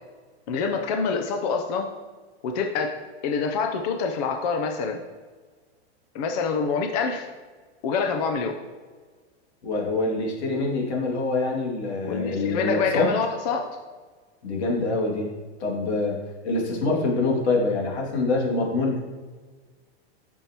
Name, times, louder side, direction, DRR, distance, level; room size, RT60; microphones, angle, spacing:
voice 1, 0.5-1.9 2.4-2.9 3.2-5.0 6.1-7.3 7.8-8.6 12.0-13.7, left 5 dB, 40° left, 4 dB, 0.6 m, -26 dB
voice 2, 9.6-13.1 14.4-15.3 15.6-16.2 16.4-19.0, left 3 dB, 90° left, -2 dB, 2.5 m, -25 dB
9.9 x 6.3 x 3.0 m, 1.4 s
supercardioid pair, 165°, 32 cm